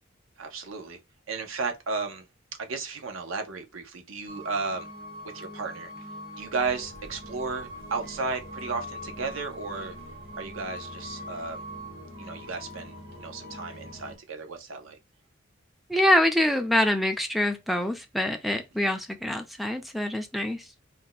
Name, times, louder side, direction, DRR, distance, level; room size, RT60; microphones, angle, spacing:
voice 1, 0.4-1.0 1.3-2.3 2.6-4.9 5.2-5.9 6.4-10.0 10.4-11.6 12.2-15.0, right 4 dB, 80° right, 0.7 m, -34 dB
sound 1, 4.3-14.2, equal, 50° right, 1.1 m, -42 dB
voice 2, 15.9-20.7, left 1 dB, ahead, 0.4 m, -25 dB
2.6 x 2.2 x 3.8 m
head